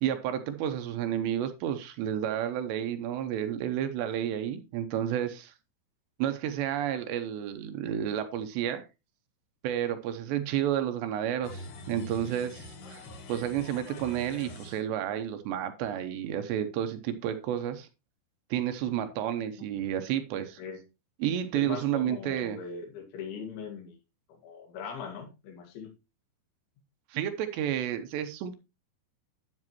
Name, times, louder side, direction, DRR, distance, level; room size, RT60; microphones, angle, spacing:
voice 1, 0.0-5.5 6.2-8.8 9.6-13.0 13.3-17.9 18.5-20.6 21.2-22.6 27.1-28.5, right 10 dB, 80° right, 2.9 m, -31 dB
sound 1, 11.4-14.8, left 1 dB, 60° left, 2.9 m, -44 dB
voice 2, 21.5-24.0 24.3-25.9, left 6 dB, 85° left, 4.3 m, -40 dB
9.9 x 8.4 x 3.0 m
omnidirectional pair, 5.3 m